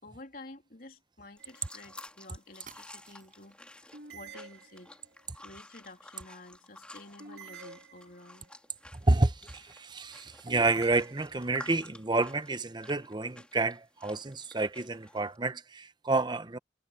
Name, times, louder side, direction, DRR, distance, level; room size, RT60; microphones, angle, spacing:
voice 1, 0.0-5.0 5.4-8.5, left 2 dB, 55° left, 3.3 m, -51 dB
sound 1, 1.4-15.4, left 1 dB, 5° left, 3.6 m, -52 dB
sound 2, 1.4-2.0 3.9-5.2 7.2-8.5 10.5-11.7, right 5 dB, 70° right, 3.1 m, -49 dB
sound 3, 2.1-2.2 2.7-3.6, right 7 dB, 50° right, 4.8 m, -55 dB
voice 2, 8.9-16.6, right 2 dB, 25° right, 0.8 m, -29 dB
head